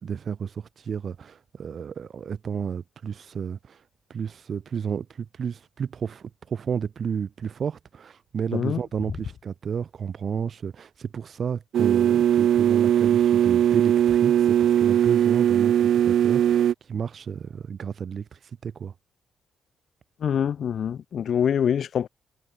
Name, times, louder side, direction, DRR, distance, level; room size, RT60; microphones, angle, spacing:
voice 1, 0.0-3.8 4.1-18.9, right 7 dB, 50° right, 5.9 m, -32 dB
sound 1, 11.7-16.7, right 10 dB, 70° right, 0.9 m, -20 dB
voice 2, 20.2-22.1, left 8 dB, 60° left, 1.4 m, -25 dB
cardioid pair, 90°, 0 cm